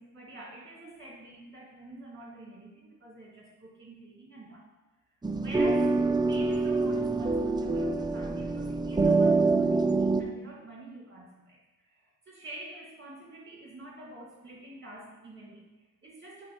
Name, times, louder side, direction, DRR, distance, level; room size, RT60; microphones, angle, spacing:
voice 1, 0.0-4.6 5.4-16.5, right 1 dB, 35° right, -3 dB, 2.2 m, -47 dB
sound 1, 5.2-10.2, right 3 dB, 15° right, 0.3 m, -25 dB
7.6 x 3.1 x 5.4 m, 1.1 s
wide cardioid pair, 120°, 34 cm